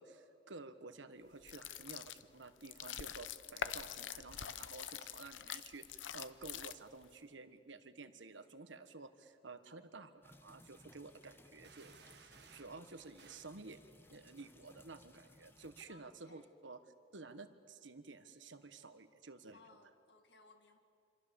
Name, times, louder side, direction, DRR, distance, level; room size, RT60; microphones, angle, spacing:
voice 1, 0.0-13.8 14.1-16.8 17.1-19.6, right 3 dB, 80° right, 10 dB, 1.5 m, -52 dB
sound 1, 1.4-7.1, left 9 dB, 80° left, 0.8 m, -45 dB
sound 2, 10.2-15.8, left 1 dB, 10° left, 1.1 m, -63 dB
sound 3, 11.6-12.8 13.2-13.5, right 6 dB, 60° right, 1.5 m, -61 dB
voice 2, 15.9-16.5 19.5-20.8, left 3 dB, 65° left, 6 dB, 2.1 m, -63 dB
26.5 x 26.5 x 7.1 m, 2.4 s
head